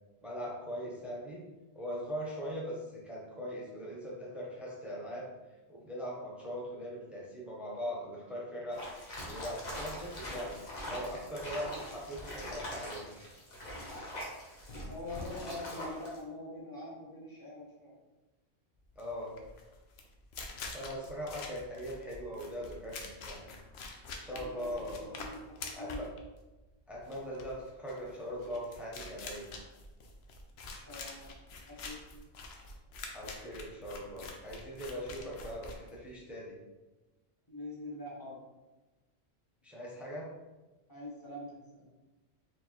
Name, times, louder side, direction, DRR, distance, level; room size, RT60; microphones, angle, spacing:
voice 1, 0.2-1.4 1.7-5.3 5.7-8.8 9.2-10.6 10.8-13.0 19.0-19.3 20.7-23.4 24.2-25.1 25.7-26.1 26.9-29.5 33.1-36.6 39.6-40.3, equal, ahead, -5 dB, 0.7 m, -40 dB
sound 1, 8.7-16.2, equal, 45° left, 0.9 m, -42 dB
voice 2, 14.9-18.0 24.3-26.0 30.8-31.3 31.6-32.0 37.5-38.4 40.9-41.9, left 2 dB, 20° left, -6 dB, 1.2 m, -44 dB
sound 2, 18.9-36.3, left 3 dB, 75° left, 0.8 m, -46 dB
4.6 x 2.9 x 3.0 m, 1.1 s
omnidirectional pair, 1.1 m